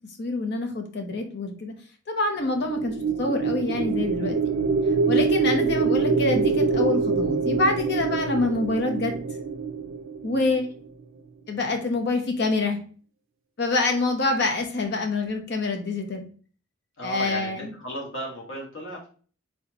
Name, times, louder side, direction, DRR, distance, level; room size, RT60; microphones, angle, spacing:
voice 1, 0.2-1.7 2.1-4.4 5.1-9.1 10.2-10.7 11.5-12.8 13.6-16.3 17.0-17.7, left 2 dB, 55° left, 4 dB, 0.9 m, -26 dB
sound 1, 2.4-10.9, right 5 dB, 80° right, 0.4 m, -25 dB
voice 2, 17.0-19.1, equal, 80° left, -2 dB, 1.8 m, -35 dB
4.3 x 3.6 x 2.9 m, 0.41 s
head